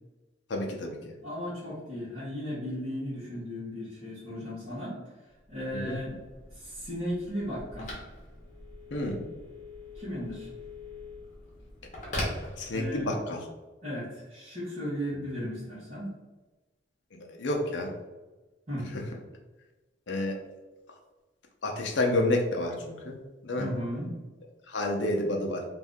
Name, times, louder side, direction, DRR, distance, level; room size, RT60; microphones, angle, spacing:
voice 1, 0.5-1.0 5.7-6.0 8.9-9.2 12.6-13.5 15.4-15.5 17.1-17.9 20.1-20.4 21.6-23.7 24.7-25.6, left 1 dB, 65° left, 1 dB, 0.6 m, -30 dB
voice 2, 1.2-6.2 6.5-7.9 9.9-10.5 12.7-13.1 13.8-16.1 18.7-18.9 23.6-24.1, equal, 35° right, -12 dB, 1.0 m, -36 dB
Telephone, 5.4-13.2, left 1 dB, 40° left, 1.0 m, -41 dB
2.6 x 2.5 x 3.5 m, 1.2 s
head